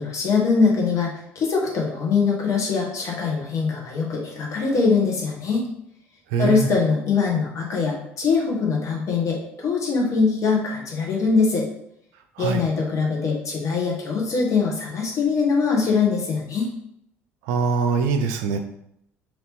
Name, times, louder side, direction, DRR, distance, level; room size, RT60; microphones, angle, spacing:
voice 1, 0.0-5.7 6.4-11.7 12.4-16.7, left 4 dB, 50° left, -1 dB, 1.1 m, -22 dB
voice 2, 6.3-6.7 12.4-12.6 17.5-18.6, right 4 dB, 75° right, 6 dB, 0.4 m, -22 dB
2.9 x 2.9 x 3.5 m, 0.74 s
hypercardioid pair, 60°, 7 cm